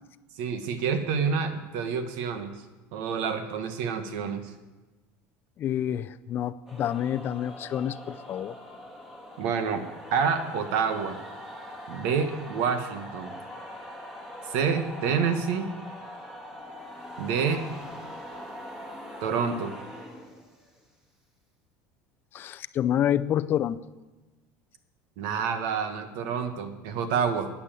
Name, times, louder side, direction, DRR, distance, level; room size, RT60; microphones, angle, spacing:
voice 1, 0.4-2.5 2.9-4.4 9.4-9.8 10.1-11.2 11.9-13.3 14.5-15.7 17.2-17.6 19.2-19.7 25.2-27.5, right 6 dB, 70° right, 8 dB, 1.6 m, -28 dB
voice 2, 5.6-8.6 22.3-23.8, left 10 dB, 35° left, 13 dB, 0.5 m, -28 dB
sound 1, 6.7-20.8, left 1 dB, 5° right, 1.9 m, -42 dB
12.0 x 9.9 x 7.6 m, 1.2 s
cardioid pair, 160°, 6 cm